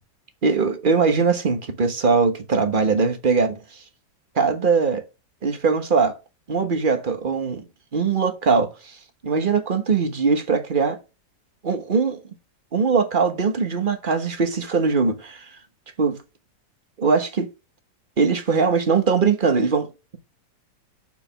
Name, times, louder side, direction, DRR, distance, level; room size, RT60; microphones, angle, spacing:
voice 1, 0.4-3.6 4.3-5.0 5.4-6.2 6.5-7.6 7.9-9.0 9.2-11.0 11.6-12.2 12.7-15.5 16.0-16.2 17.0-17.5 18.2-20.2, right 5 dB, 35° right, 1.1 m, -21 dB
6.6 x 6.0 x 5.9 m
omnidirectional pair, 2.0 m